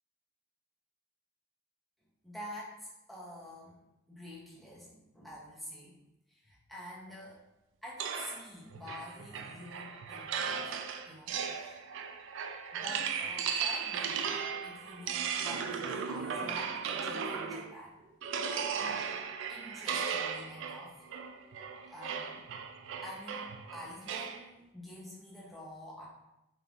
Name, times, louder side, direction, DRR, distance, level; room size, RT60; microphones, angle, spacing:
voice 1, 2.2-3.8 4.1-6.0 6.3-7.4 7.8-10.8 11.1-11.8 12.7-14.3 14.6-18.0 19.5-21.0 21.8-22.4 23.0-26.1, left 1 dB, ahead, -6 dB, 0.8 m, -48 dB
sound 1, 8.0-17.8 18.2-24.4, right 6 dB, 65° right, 0.3 m, -36 dB
4.1 x 3.5 x 2.4 m, 0.92 s
head